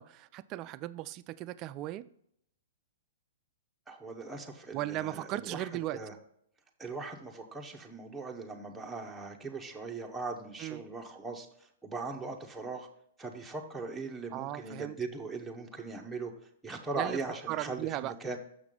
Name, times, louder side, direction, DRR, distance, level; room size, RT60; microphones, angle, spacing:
voice 1, 0.0-2.1 4.7-6.0 10.6-10.8 14.3-15.0 16.9-17.2 17.5-18.2, right 15 dB, 35° right, 0.4 m, -37 dB
voice 2, 3.9-6.1 6.8-11.5 11.8-12.9 13.2-16.3 16.6-18.4, right 3 dB, 5° right, 0.8 m, -39 dB
6.5 x 6.0 x 3.7 m
hypercardioid pair, 130°, 0 cm